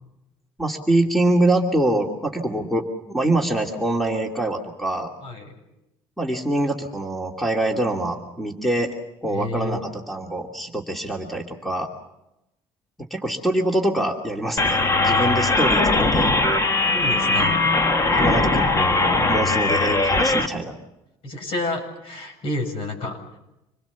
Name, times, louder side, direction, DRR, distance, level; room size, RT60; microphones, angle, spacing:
voice 1, 0.6-5.1 6.2-8.9 9.2-11.9 13.1-16.3 18.2-20.8, right 1 dB, ahead, 1 dB, 2.6 m, -24 dB
voice 2, 9.3-9.8 16.9-17.7 21.2-23.2, left 2 dB, 60° left, 5 dB, 7.7 m, -29 dB
sound 1, 14.6-20.5, left 2 dB, 30° left, 1.8 m, -20 dB
27.0 x 21.5 x 7.2 m, 0.90 s
cardioid pair, 110°, 11 cm